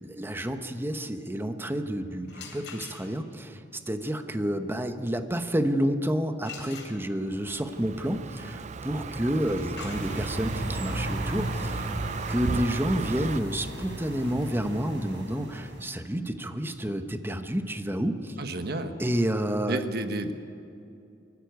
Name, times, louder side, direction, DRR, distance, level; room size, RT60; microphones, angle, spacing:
voice 1, 0.0-3.6 3.9-11.9 12.3-18.3 19.0-19.8, equal, 15° right, 8 dB, 1.1 m, -29 dB
sound 1, 2.2-3.4 6.4-7.5 9.3-15.0, left 6 dB, 75° left, 3.8 m, -47 dB
Car passing by, 7.4-13.4, right 4 dB, 40° right, 0.5 m, -35 dB
sound 2, 9.9-15.8, right 1 dB, 85° right, 4.2 m, -35 dB
voice 2, 18.4-18.9 19.7-20.3, right 2 dB, 60° right, 8 dB, 1.3 m, -31 dB
23.5 x 13.5 x 9.4 m, 2.6 s
head